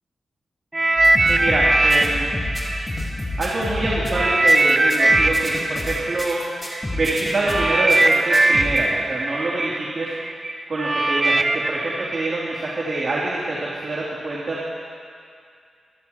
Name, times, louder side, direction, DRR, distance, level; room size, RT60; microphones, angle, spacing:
sound 1, 0.7-3.7 4.1-13.1 13.8-14.0, right 2 dB, 30° right, 0.7 m, -21 dB
sound 2, 1.0-8.8, left 1 dB, 20° left, 4.1 m, -29 dB
voice 1, 1.2-2.3 3.4-6.4 6.9-10.1 10.7-13.6 13.8-14.6, right 2 dB, 55° right, -6 dB, 2.9 m, -25 dB
27.5 x 13.5 x 3.0 m, 2.3 s
cardioid pair, 55°, 0 cm